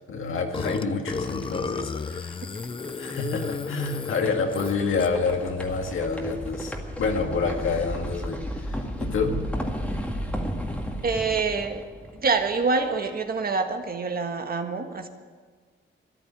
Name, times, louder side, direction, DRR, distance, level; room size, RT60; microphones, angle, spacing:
voice 1, 0.1-2.4 2.9-9.4, left 4 dB, 80° left, 3 dB, 2.0 m, -28 dB
Burping eructation, 0.5-5.3, left 4 dB, 25° left, 0.6 m, -33 dB
sound 1, 0.8-12.9, equal, 5° left, 2.0 m, -34 dB
voice 2, 11.0-11.8 12.2-15.1, right 4 dB, 45° right, 6 dB, 1.5 m, -26 dB
13.5 x 11.0 x 8.6 m, 1.5 s
wide cardioid pair, 115°, 20 cm